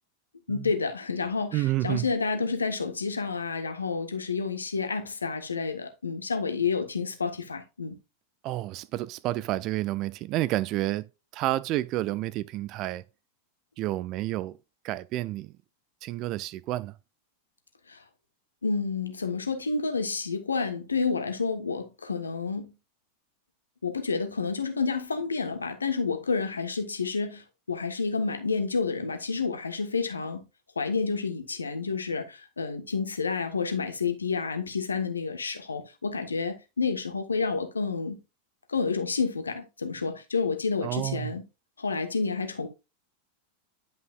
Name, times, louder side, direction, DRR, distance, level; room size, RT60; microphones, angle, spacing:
voice 1, 0.5-8.0 17.9-18.0 18.6-22.7 23.8-30.4 30.7-38.2 38.7-41.4 41.8-42.7, left 4 dB, 75° left, 1.4 m, -29 dB
voice 2, 1.5-2.1 8.4-11.0 11.3-13.0 13.8-14.6 14.8-15.5 16.0-16.9 40.8-41.3, right 16 dB, 40° right, 0.5 m, -30 dB
11.0 x 5.4 x 2.5 m
figure-of-eight pair, 90°, 0 cm